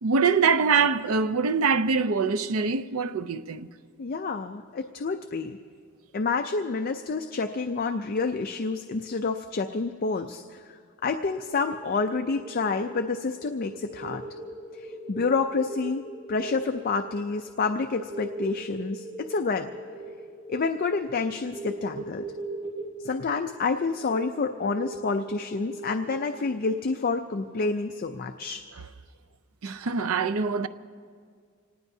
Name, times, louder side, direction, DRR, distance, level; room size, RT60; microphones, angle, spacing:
voice 1, 0.0-3.7 29.6-30.7, right 5 dB, 85° right, 0.6 m, -24 dB
voice 2, 4.0-5.6 6.1-14.2 14.7-19.7 20.5-22.3 23.0-28.7, left 4 dB, 45° left, 0.5 m, -29 dB
sound 1, 11.5-26.9, right 2 dB, 30° right, 2.2 m, -40 dB
26.5 x 19.0 x 2.7 m
head